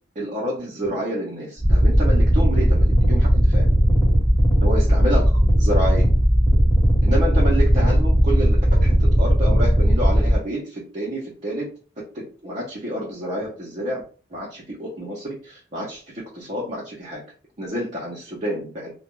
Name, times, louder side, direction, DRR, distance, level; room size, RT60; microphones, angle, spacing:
voice 1, 0.2-3.7 4.6-5.3 5.6-6.1 7.0-11.7 12.1-14.0 14.3-17.2 17.6-18.9, equal, 35° right, -5 dB, 0.7 m, -29 dB
sound 1, 1.6-10.4, equal, 20° left, 1.1 m, -17 dB
2.3 x 2.2 x 3.0 m, 0.37 s
head